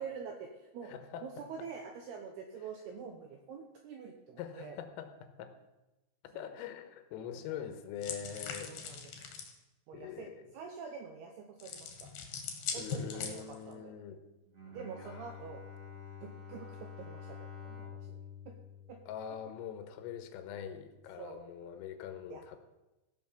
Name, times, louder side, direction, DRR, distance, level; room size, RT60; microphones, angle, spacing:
voice 1, 0.0-0.9 1.2-4.8 6.3-6.5 7.3-7.7 8.7-9.3 9.9-10.3 10.5-12.1 12.7-13.9 14.7-15.6 16.2-18.1 18.5-18.6 18.9-19.0 21.2-21.4 22.3-22.4, right 6 dB, 80° right, 3 dB, 2.3 m, -46 dB
voice 2, 0.8-1.7 4.4-5.6 6.2-9.0 9.9-10.5 12.7-14.2 15.0-15.4 19.1-22.6, left 8 dB, 85° left, 8 dB, 3.7 m, -44 dB
sound 1, 8.0-9.5 11.6-13.7, left 6 dB, 60° left, 2.6 m, -41 dB
Bowed string instrument, 14.5-19.8, left 6 dB, 30° right, 1.9 m, -48 dB
16.0 x 6.1 x 7.0 m, 1.0 s
omnidirectional pair, 5.9 m